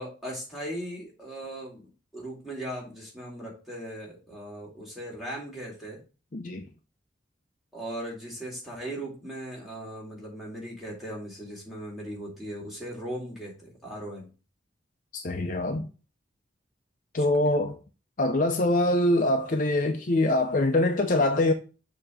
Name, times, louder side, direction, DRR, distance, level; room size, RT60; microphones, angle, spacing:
voice 1, 0.0-1.8 2.1-6.0 7.7-14.3 17.2-17.3, right 1 dB, ahead, 2.2 m, -38 dB
voice 2, 6.3-6.7 15.1-15.9 17.1-17.8 18.2-21.5, left 1 dB, 45° left, 0.6 m, -24 dB
6.9 x 2.9 x 4.9 m
head